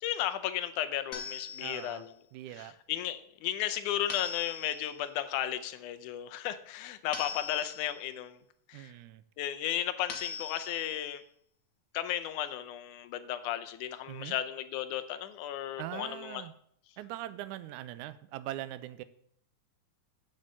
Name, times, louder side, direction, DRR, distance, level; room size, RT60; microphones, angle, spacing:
voice 1, 0.0-2.1 2.6-8.4 8.7-8.9 9.4-11.2 11.9-16.4, left 12 dB, 85° left, 11 dB, 2.1 m, -34 dB
sound 1, 1.1-2.0 4.1-5.0 7.1-8.0 10.1-11.0, left 5 dB, 50° left, 1.4 m, -41 dB
voice 2, 1.6-2.1 2.3-2.8 8.7-9.2 14.1-14.4 15.8-16.5 17.0-19.0, right 14 dB, 80° right, 14 dB, 2.0 m, -41 dB
8.2 x 6.6 x 7.5 m, 0.67 s
omnidirectional pair, 3.5 m